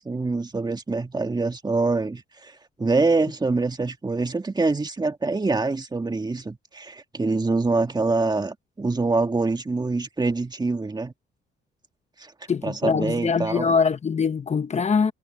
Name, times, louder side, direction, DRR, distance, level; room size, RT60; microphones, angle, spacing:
voice 1, 0.0-11.1 12.2-12.3 12.6-13.7, right 3 dB, 20° right, 1.9 m, -25 dB
voice 2, 12.5-15.1, left 5 dB, 35° left, 1.0 m, -23 dB
cardioid pair, 90°, 20 cm